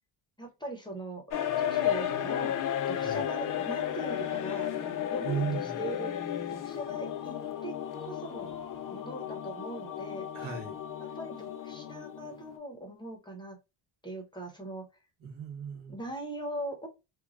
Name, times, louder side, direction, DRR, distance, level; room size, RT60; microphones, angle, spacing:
voice 1, 0.4-1.2 1.6-2.5 2.9-4.7 5.1-6.2 6.5-7.7 8.0-8.5 8.9-10.3 11.0-13.6 14.0-14.9 15.9-16.9, right 1 dB, 10° left, 0.8 m, -40 dB
sound 1, 1.3-12.6, left 10 dB, 45° left, 0.5 m, -34 dB
voice 2, 2.9-3.2 5.2-5.8 10.3-10.8 15.2-16.0, right 6 dB, 65° right, 1.3 m, -36 dB
3.0 x 2.2 x 2.4 m
cardioid pair, 125°, 48 cm